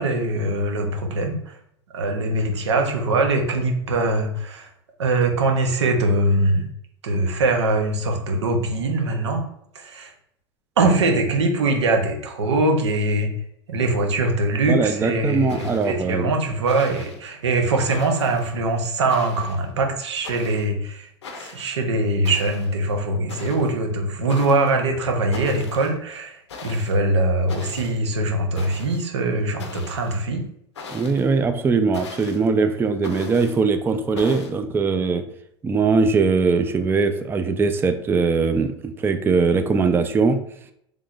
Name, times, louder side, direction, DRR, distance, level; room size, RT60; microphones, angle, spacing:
voice 1, 0.0-1.6 1.9-4.7 5.0-6.6 7.0-9.4 9.7-10.1 10.8-13.3 13.7-21.1 21.4-30.4, right 2 dB, 85° right, 3 dB, 0.8 m, -22 dB
voice 2, 14.7-16.3 30.9-35.2 35.6-40.4, right 4 dB, 15° right, 8 dB, 0.3 m, -21 dB
sound 1, 14.8-14.9 15.5-16.0 16.6-17.2 17.9-18.5 19.1-19.7 20.2-20.6 21.2-21.7 22.2-22.7 23.3-23.7 24.3-24.8 25.3-25.9 26.5-26.9 27.5-28.0 28.5-29.1 29.6-30.2 30.7-31.3 31.9-32.5 33.0-33.6 34.2-34.5, left 4 dB, 90° left, 0.7 m, -39 dB
3.5 x 3.2 x 2.5 m, 0.72 s
hypercardioid pair, 90°, 14 cm